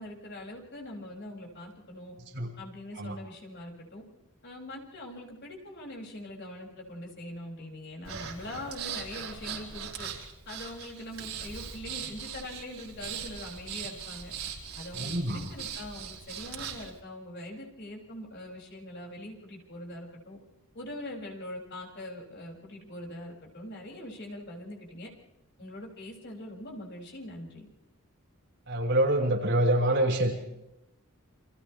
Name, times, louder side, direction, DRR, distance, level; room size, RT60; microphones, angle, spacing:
voice 1, 0.0-2.1 2.6-4.0 4.4-10.1 10.4-14.3 14.7-20.4 20.7-25.1 25.6-27.7, left 1 dB, 50° left, -1 dB, 6.8 m, -42 dB
Breathing, 8.0-16.9, right 7 dB, 70° right, 4.8 m, -40 dB
voice 2, 15.0-15.4 28.7-30.3, right 1 dB, 55° right, -1 dB, 5.7 m, -26 dB
30.0 x 28.0 x 3.4 m, 0.88 s
head